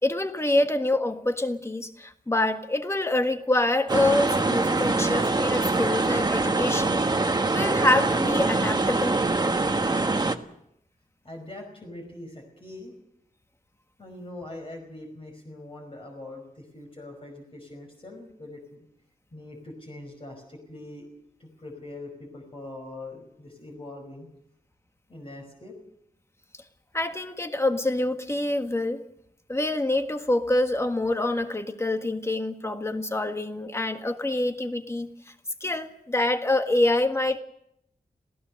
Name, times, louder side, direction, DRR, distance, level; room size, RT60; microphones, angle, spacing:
voice 1, 0.0-7.0 7.5-9.2 26.9-29.0 29.5-35.1 35.6-37.4, left 2 dB, 20° left, 7 dB, 1.6 m, -26 dB
sound 1, 3.9-10.4, right 3 dB, 25° right, 1.3 m, -24 dB
voice 2, 11.2-12.9 14.0-18.8 19.3-21.1 21.4-24.3 25.1-25.7, left 2 dB, 35° left, 1 dB, 5.2 m, -42 dB
27.0 x 17.5 x 6.6 m, 0.77 s
wide cardioid pair, 130°, 15 cm